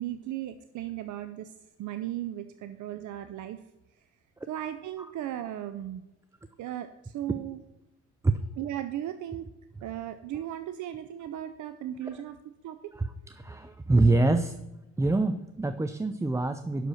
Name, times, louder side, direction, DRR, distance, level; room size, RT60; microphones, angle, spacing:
voice 1, 0.0-1.5 1.8-3.6 4.5-6.0 6.6-7.6 8.6-9.5 9.8-12.9, right 12 dB, 75° right, 10 dB, 0.6 m, -36 dB
voice 2, 12.9-14.6 15.0-16.9, right 2 dB, 10° right, 10 dB, 0.4 m, -25 dB
7.7 x 6.4 x 6.3 m, 0.95 s
cardioid pair, 90°, 30 cm